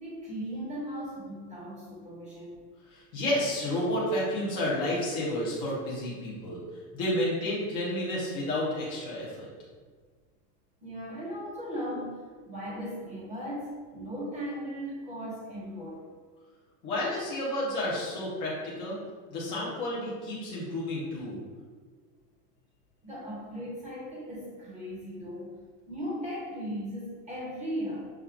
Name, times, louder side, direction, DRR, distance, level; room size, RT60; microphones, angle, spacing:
voice 1, 0.0-2.6 10.8-16.1 23.0-25.6 25.9-28.1, equal, 15° right, -7 dB, 1.4 m, -37 dB
voice 2, 2.9-6.6 6.9-9.5 16.8-19.0 19.3-21.4, left 1 dB, 10° left, -6 dB, 0.3 m, -31 dB
5.7 x 2.2 x 3.6 m, 1.5 s
supercardioid pair, 155°, 48 cm